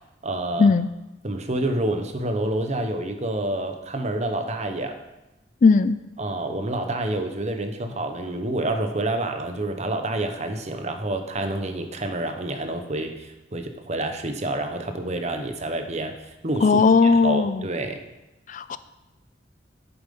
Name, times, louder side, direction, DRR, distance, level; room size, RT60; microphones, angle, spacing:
voice 1, 0.2-0.7 1.2-5.0 6.2-16.1 16.4-18.0, right 2 dB, 40° right, 6 dB, 1.0 m, -28 dB
voice 2, 5.6-6.0 16.6-17.6 18.5-18.8, left 4 dB, 45° left, 14 dB, 0.4 m, -17 dB
8.9 x 7.6 x 5.4 m, 0.99 s
head